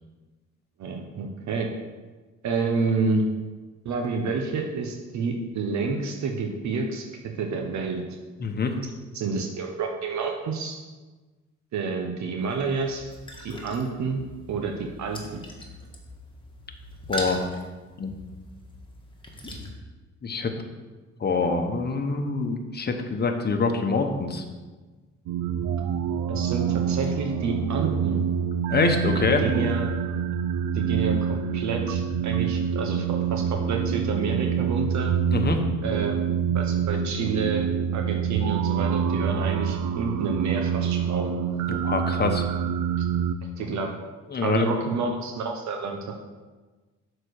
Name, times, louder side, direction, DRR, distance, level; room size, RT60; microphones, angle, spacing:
voice 1, 0.8-1.7 2.4-3.3 3.8-7.1 7.4-8.0 9.1-10.8 11.7-13.0 13.4-14.2 14.5-15.4 26.3-28.3 29.2-29.9 30.7-35.1 35.8-36.2 36.5-41.3 43.0-43.1 43.6-43.9 44.4-46.1, right 4 dB, 65° right, 3 dB, 0.9 m, -29 dB
voice 2, 8.4-8.7 17.1-17.4 18.0-18.2 20.2-20.5 21.2-24.4 28.7-29.4 35.3-35.6 41.7-42.4 44.3-44.7, left 4 dB, 35° left, 5 dB, 1.0 m, -25 dB
sound 1, 12.4-19.7, right 1 dB, 15° left, 1.5 m, -40 dB
sound 2, 25.3-43.4, right 8 dB, 85° right, 0.5 m, -26 dB
6.7 x 4.4 x 6.5 m, 1.3 s
cardioid pair, 90°, 30 cm